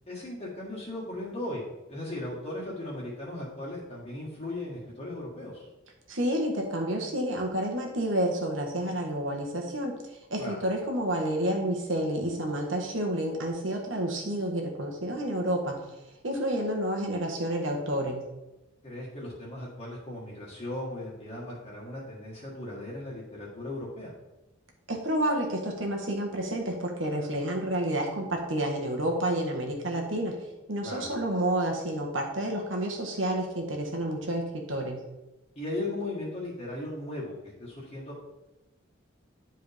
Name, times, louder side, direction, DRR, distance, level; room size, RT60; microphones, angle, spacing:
voice 1, 0.1-5.6 10.4-10.6 18.8-24.1 30.8-31.1 35.5-38.2, left 1 dB, 35° left, -6 dB, 1.6 m, -37 dB
voice 2, 6.1-10.0 10.3-15.8 16.2-18.2 24.9-30.4 30.7-35.0, right 1 dB, 75° right, 1 dB, 1.5 m, -29 dB
10.5 x 4.6 x 3.5 m, 0.99 s
head